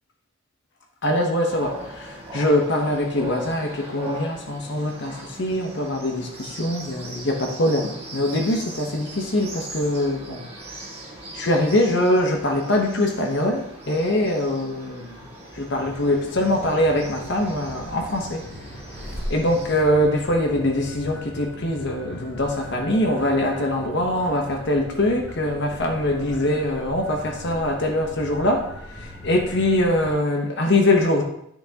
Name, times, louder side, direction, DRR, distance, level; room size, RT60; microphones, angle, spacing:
voice 1, 1.0-11.0 11.3-15.2 15.5-18.4 19.3-28.7 28.9-31.2, left 1 dB, 55° left, 2 dB, 1.0 m, -23 dB
sound 1, 1.5-19.8, right 1 dB, 30° right, 1.5 m, -40 dB
sound 2, 15.7-30.1, left 1 dB, 15° left, 1.9 m, -39 dB
10.5 x 6.0 x 2.9 m, 0.75 s
head